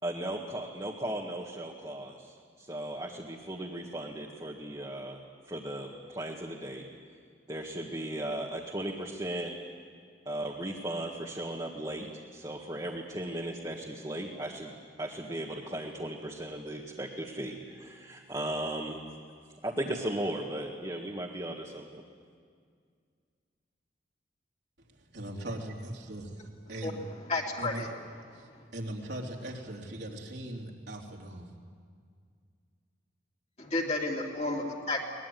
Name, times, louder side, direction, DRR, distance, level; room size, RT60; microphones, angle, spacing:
voice 1, 0.0-5.2 5.5-6.8 7.5-9.5 10.3-12.1 12.3-14.7 15.0-19.0 19.6-22.0, right 1 dB, 20° right, -2 dB, 1.8 m, -36 dB
voice 2, 25.1-27.0 27.6-27.9 28.3-28.5 28.7-31.5, right 1 dB, 65° right, -1 dB, 3.3 m, -39 dB
voice 3, 27.3-27.9 33.6-35.0, left 2 dB, 35° left, -1 dB, 2.9 m, -31 dB
23.5 x 20.0 x 9.4 m, 2.1 s
head